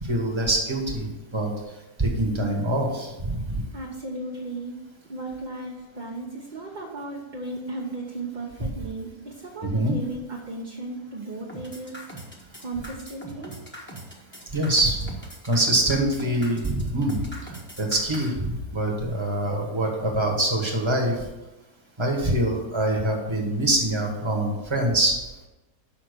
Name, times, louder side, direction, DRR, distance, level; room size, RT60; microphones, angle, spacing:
voice 1, 0.0-1.1 1.3-1.5 2.0-3.6 9.6-10.0 14.5-15.1 15.4-17.5 17.8-21.2 22.0-25.2, right 1 dB, 20° right, 0 dB, 1.4 m, -24 dB
voice 2, 3.7-4.7 5.1-11.9 12.6-13.6, right 2 dB, 35° right, -2 dB, 1.0 m, -35 dB
sound 1, 11.5-18.3, right 1 dB, 10° left, 1.2 m, -41 dB
5.9 x 5.7 x 6.7 m, 1.1 s
omnidirectional pair, 1.6 m